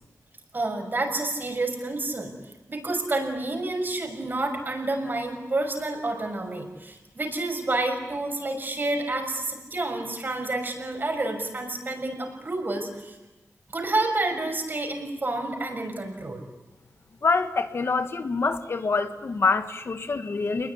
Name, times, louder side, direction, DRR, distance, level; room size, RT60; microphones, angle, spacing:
voice 1, 0.5-2.3 2.7-13.1 13.7-16.4, right 2 dB, 40° right, 4 dB, 6.5 m, -29 dB
voice 2, 17.2-20.7, left 4 dB, 55° left, 8 dB, 1.6 m, -25 dB
28.5 x 21.0 x 9.8 m, 1.1 s
wide cardioid pair, 110°, 5 cm